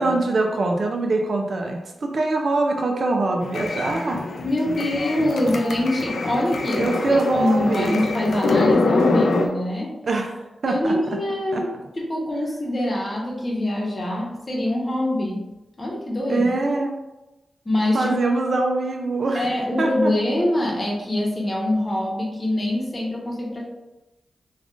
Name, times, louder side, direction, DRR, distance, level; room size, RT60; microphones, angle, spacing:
voice 1, 0.0-4.2 6.7-8.0 10.0-11.0 11.5-11.6 16.3-16.9 17.9-20.1, right 2 dB, 60° right, 2 dB, 0.4 m, -23 dB
sound 1, 3.4-9.5, left 3 dB, 80° left, 0.3 m, -24 dB
voice 2, 4.4-9.9 10.6-15.4 15.8-16.5 17.6-18.1 19.3-23.6, left 1 dB, 35° left, -2 dB, 0.9 m, -24 dB
3.4 x 2.4 x 2.4 m, 1.0 s
cardioid pair, 60°, 0 cm